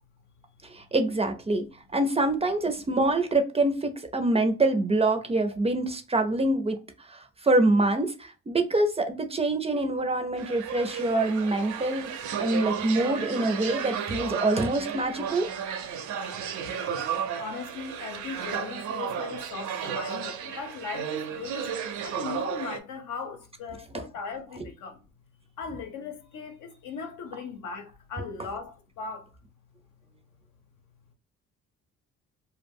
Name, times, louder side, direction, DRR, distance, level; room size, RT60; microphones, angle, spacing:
voice 1, 0.7-1.7 1.9-6.8 7.1-12.1 12.4-15.5, right 2 dB, 20° right, 0.4 m, -25 dB
sound 1, 10.4-22.8, right 7 dB, 70° right, 0.5 m, -33 dB
voice 2, 17.4-25.0 25.6-29.3, left 5 dB, 75° left, 0.7 m, -38 dB
2.2 x 2.0 x 3.4 m
cardioid pair, 90°, 30 cm